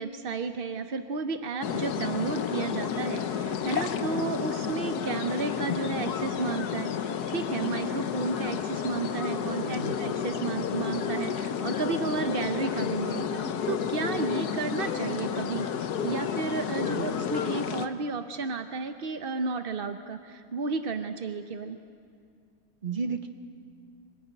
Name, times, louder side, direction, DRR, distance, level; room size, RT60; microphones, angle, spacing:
voice 1, 0.0-21.8, right 4 dB, 50° right, 7 dB, 0.7 m, -32 dB
sound 1, 1.6-17.9, left 8 dB, 65° left, 1.4 m, -31 dB
voice 2, 9.7-10.0 16.8-17.1 22.8-23.3, right 4 dB, 30° right, 6 dB, 1.4 m, -33 dB
25.5 x 20.5 x 9.4 m, 2.4 s
omnidirectional pair, 1.9 m